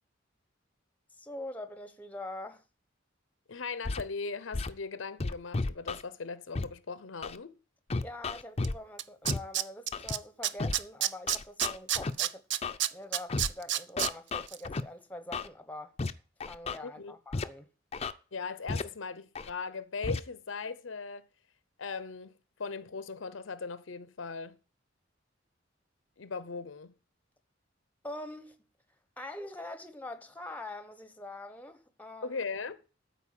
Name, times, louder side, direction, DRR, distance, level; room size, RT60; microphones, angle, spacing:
voice 1, 1.1-2.6 8.0-12.5 12.9-15.9 16.5-17.7 28.0-28.6 29.2-32.4, left 1 dB, 10° left, 0.9 m, -44 dB
voice 2, 3.5-7.6 16.8-17.1 18.3-21.3 21.8-22.3 22.6-24.6 26.2-26.9 32.2-32.8, left 4 dB, 85° left, 0.8 m, -39 dB
Scratching (performance technique), 3.8-4.0 4.5-4.7 5.2-6.0 6.5-6.6 7.2-7.4 7.9-8.7 9.2-9.4 9.9-10.1 10.6-10.7 11.3-12.1 12.6-12.8 13.3-13.5 14.0-14.8 15.3-15.5 16.0-16.1 16.4-16.8 17.3-17.4 17.9-18.1 18.7-18.8 19.3-19.5 20.0-20.2, left 3 dB, 35° left, 0.5 m, -32 dB
Tools, 8.6-8.7 9.0-10.2 10.4-14.1 14.5-14.6, right 12 dB, 65° right, 0.5 m, -29 dB
13.5 x 4.5 x 7.5 m
head